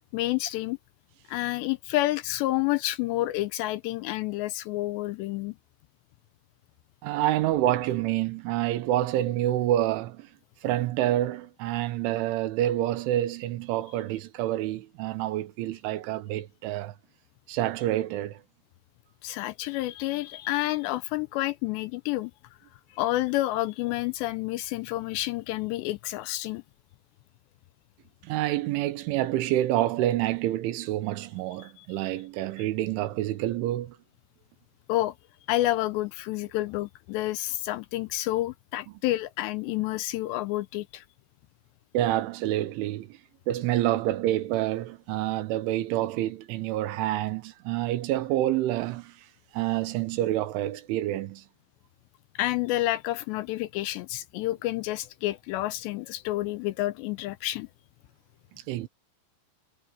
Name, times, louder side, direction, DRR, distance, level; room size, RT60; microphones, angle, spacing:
voice 1, 0.1-0.8 1.3-5.5 19.2-22.3 22.9-26.6 31.6-31.9 34.9-35.1 35.5-41.0 52.4-57.7, left 16 dB, 85° left, 2.6 m, -29 dB
voice 2, 7.0-10.3 10.6-17.0 17.5-18.4 28.2-34.0 41.9-43.2 43.5-49.2 49.5-51.4 58.5-58.9, right 14 dB, 85° right, 3.6 m, -27 dB
omnidirectional pair, 5.4 m